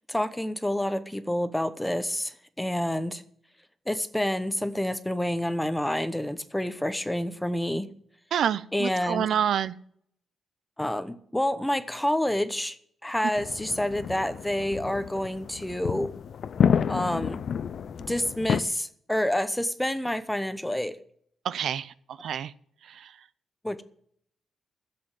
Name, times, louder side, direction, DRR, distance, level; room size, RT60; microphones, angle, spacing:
voice 1, 0.1-3.2 3.9-7.9 8.7-9.3 10.8-12.8 13.0-16.1 16.9-17.4 18.1-21.0 23.6-23.8, left 1 dB, 5° left, 12 dB, 0.9 m, -28 dB
voice 2, 8.3-9.7 21.4-22.5 22.8-23.3, right 9 dB, 70° right, 15 dB, 0.6 m, -28 dB
sound 1, 13.4-18.6, left 7 dB, 55° left, 0.5 m, -29 dB
11.5 x 7.8 x 8.9 m, 0.64 s
cardioid pair, 140°, 0 cm